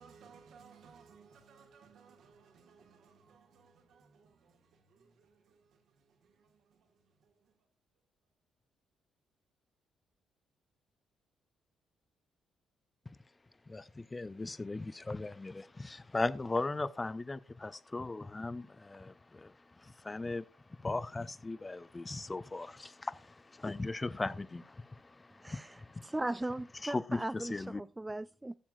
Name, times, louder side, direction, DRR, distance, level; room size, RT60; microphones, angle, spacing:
voice 1, 0.0-7.6, right 5 dB, 60° right, 1.9 m, -61 dB
voice 2, 13.7-20.4 20.8-26.1 26.8-27.8, left 2 dB, 25° left, 0.6 m, -38 dB
voice 3, 25.4-28.5, right 2 dB, 15° right, 0.3 m, -38 dB
15.5 x 7.2 x 2.4 m
hypercardioid pair, 45°, 0 cm